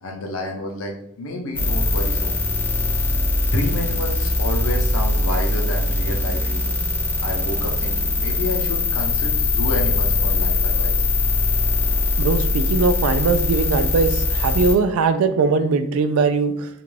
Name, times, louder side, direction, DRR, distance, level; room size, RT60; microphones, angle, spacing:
voice 1, 0.0-2.3 3.5-6.8 7.2-10.9, left 1 dB, 70° left, 1 dB, 0.6 m, -29 dB
sound 1, 1.5-14.7, left 2 dB, 10° left, 0.6 m, -21 dB
voice 2, 12.2-16.7, right 4 dB, 75° right, 10 dB, 0.3 m, -20 dB
2.4 x 2.2 x 3.2 m, 0.76 s
head